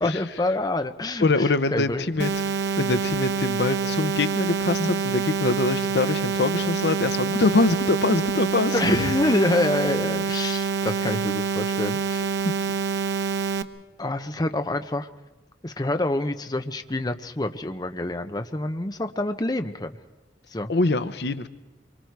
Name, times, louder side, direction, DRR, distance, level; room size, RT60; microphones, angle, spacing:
voice 1, 0.0-2.0 4.8-4.9 8.7-12.3 14.0-15.1 15.6-19.9 20.5-20.7, left 2 dB, 25° left, 8 dB, 0.8 m, -26 dB
voice 2, 1.2-9.0 12.4-12.7 20.7-21.5, left 2 dB, 70° left, 12 dB, 0.8 m, -24 dB
sound 1, 2.2-13.6, right 5 dB, 90° right, 1.0 m, -26 dB
26.0 x 24.0 x 4.7 m, 1.1 s
head